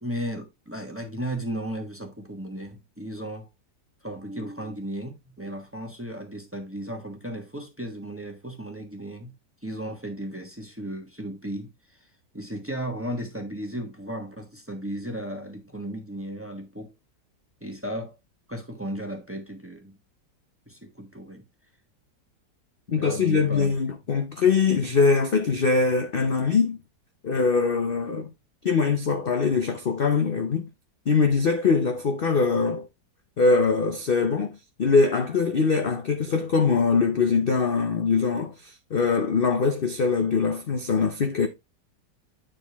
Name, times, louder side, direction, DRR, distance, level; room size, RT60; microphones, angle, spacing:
voice 1, 0.0-3.5 4.0-9.3 9.6-12.1 12.3-16.9 17.6-18.1 18.5-20.0 20.7-21.5 22.9-23.8, right 1 dB, 10° right, 1.1 m, -35 dB
voice 2, 22.9-26.8 27.2-28.3 28.6-30.7 31.1-32.9 33.4-41.5, left 4 dB, 50° left, 0.7 m, -22 dB
9.4 x 4.2 x 3.4 m
omnidirectional pair, 1.9 m